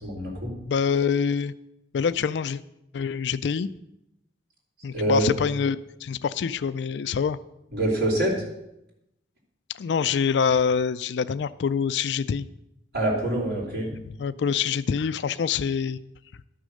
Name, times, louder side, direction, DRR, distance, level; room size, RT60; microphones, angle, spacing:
voice 1, 0.0-0.5 4.9-5.3 7.7-8.3 12.9-13.9, right 1 dB, 70° right, -5 dB, 3.3 m, -25 dB
voice 2, 0.7-1.5 1.9-2.6 2.9-3.7 4.8-7.4 9.7-12.5 14.0-16.0, left 6 dB, 80° left, 14 dB, 0.4 m, -25 dB
12.5 x 6.3 x 6.5 m, 0.86 s
head